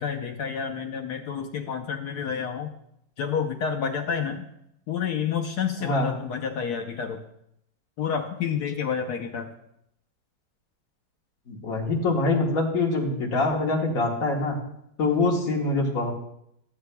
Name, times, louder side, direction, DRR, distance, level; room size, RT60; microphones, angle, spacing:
voice 1, 0.0-2.7 3.2-4.5 4.9-7.2 8.0-9.5, left 7 dB, 70° left, 4 dB, 0.9 m, -29 dB
voice 2, 5.8-6.1 11.5-14.6 15.0-16.1, left 3 dB, 45° left, 0 dB, 1.6 m, -24 dB
14.5 x 7.9 x 2.2 m, 0.76 s
omnidirectional pair, 2.3 m